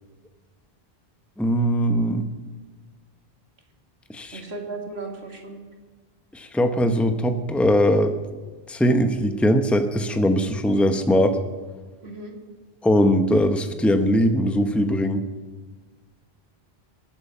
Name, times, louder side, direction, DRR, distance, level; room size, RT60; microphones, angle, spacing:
voice 1, 1.4-2.3 4.1-4.4 6.3-8.1 8.7-11.4 12.8-15.2, equal, ahead, 7 dB, 0.9 m, -20 dB
voice 2, 4.3-5.6 12.0-12.3, right 3 dB, 80° right, 2 dB, 2.4 m, -35 dB
22.5 x 8.8 x 6.8 m, 1.3 s
omnidirectional pair, 1.0 m